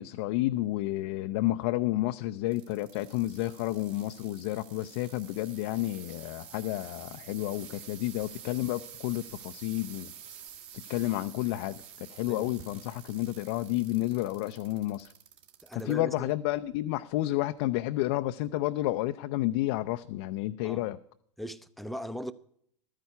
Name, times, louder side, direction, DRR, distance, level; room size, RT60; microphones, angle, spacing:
voice 1, 0.0-10.1 10.9-15.1 15.7-21.0, left 16 dB, 50° left, 0.5 m, -31 dB
sound 1, 2.5-15.9 16.5-16.9 17.6-17.7, right 8 dB, 50° right, 2.2 m, -49 dB
voice 2, 15.6-16.3 20.6-20.8 21.4-22.3, equal, ahead, 0.5 m, -39 dB
13.0 x 9.6 x 5.6 m
figure-of-eight pair, 95°, 16 cm